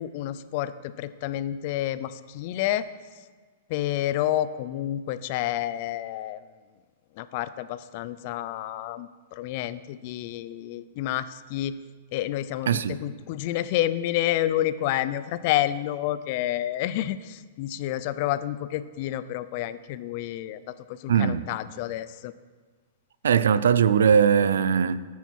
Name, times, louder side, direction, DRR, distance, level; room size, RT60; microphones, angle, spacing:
voice 1, 0.0-2.8 3.7-6.4 7.2-11.8 12.1-22.3, left 13 dB, 50° left, 0.4 m, -29 dB
voice 2, 12.7-13.0 21.1-21.4 23.2-25.0, right 7 dB, 90° right, 0.4 m, -20 dB
10.0 x 9.4 x 4.6 m
hypercardioid pair, 145°, 0 cm